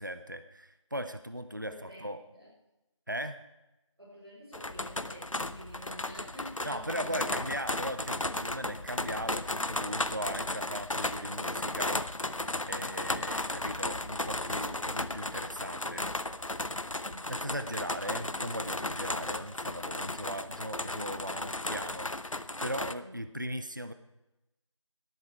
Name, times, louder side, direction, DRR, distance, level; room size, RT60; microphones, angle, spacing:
voice 1, 0.0-2.2 3.1-3.4 6.6-12.0 12.7-16.1 17.3-23.9, equal, 40° right, 10 dB, 0.7 m, -38 dB
voice 2, 1.6-2.5 4.0-7.3 16.8-17.4 23.0-23.2, equal, 55° right, -8 dB, 5.4 m, -49 dB
sound 1, 4.5-22.9, left 2 dB, 90° left, 0.8 m, -35 dB
18.0 x 11.0 x 4.7 m, 0.97 s
figure-of-eight pair, 180°, 16 cm